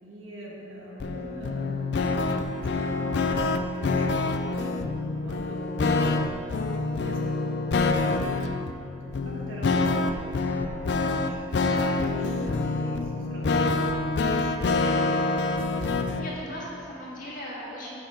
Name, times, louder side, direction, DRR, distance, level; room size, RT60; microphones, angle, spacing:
voice 1, 0.0-6.6 6.9-8.6 8.9-14.1, equal, 85° right, -4 dB, 1.5 m, -44 dB
sound 1, 1.0-16.3, left 3 dB, 60° left, 0.4 m, -26 dB
voice 2, 16.2-18.0, equal, 45° left, -6 dB, 1.7 m, -39 dB
6.7 x 5.4 x 5.8 m, 2.8 s
head